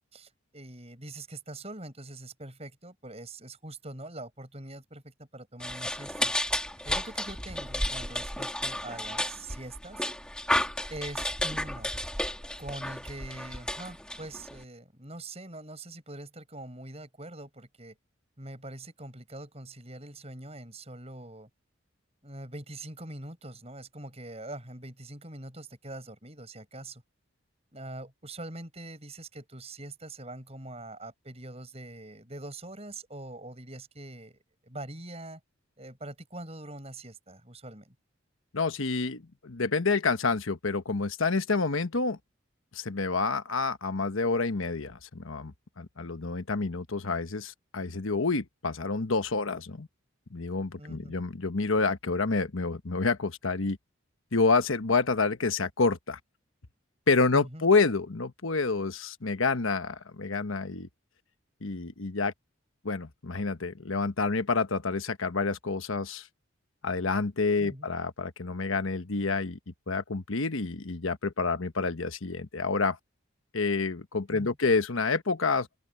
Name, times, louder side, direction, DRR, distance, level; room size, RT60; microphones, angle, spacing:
voice 1, 0.1-6.3 6.8-10.1 10.9-11.9 12.6-18.0 18.4-21.5 22.2-27.0 27.7-35.4 35.8-37.9 50.8-51.2 57.3-57.6 67.6-67.9 74.3-74.6, right 2 dB, 30° right, 7.6 m, -43 dB
sound 1, 5.6-14.6, left 1 dB, 5° left, 2.5 m, -32 dB
voice 2, 38.5-42.2 42.7-49.9 50.3-53.8 54.3-56.2 57.1-60.9 61.6-62.3 62.8-66.3 66.8-69.6 69.9-73.0 73.5-75.7, left 4 dB, 75° left, 1.1 m, -28 dB
open air
head